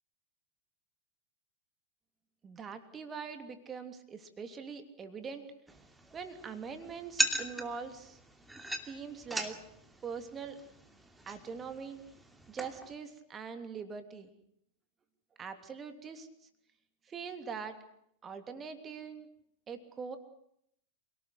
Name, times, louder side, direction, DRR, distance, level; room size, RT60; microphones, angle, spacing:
voice 1, 2.4-5.5 6.1-8.2 8.8-9.6 10.0-10.6 11.3-12.0 12.5-14.3 15.4-16.3 17.0-17.8 18.2-19.3 19.7-20.2, right 6 dB, 20° right, 8 dB, 3.0 m, -42 dB
sound 1, 5.7-13.0, right 1 dB, 5° right, 2.8 m, -39 dB
27.5 x 19.0 x 8.1 m, 0.74 s
figure-of-eight pair, 90°, 0 cm